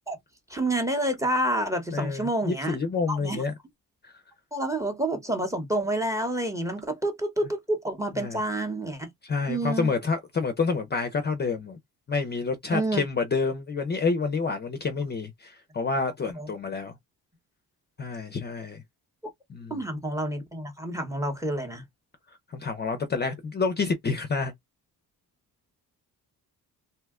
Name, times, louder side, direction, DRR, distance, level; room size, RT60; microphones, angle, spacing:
voice 1, 0.5-2.8 3.1-3.4 4.5-9.1 9.5-9.9 12.7-13.0 16.4-16.5 19.7-21.8, right 1 dB, 10° right, 0.8 m, -28 dB
voice 2, 1.9-3.5 4.0-4.1 8.2-8.4 9.2-11.8 12.1-16.9 18.0-18.8 19.5-19.8 22.5-24.5, left 4 dB, 30° left, 0.5 m, -28 dB
2.7 x 2.2 x 3.5 m
cardioid pair, 140°, 36 cm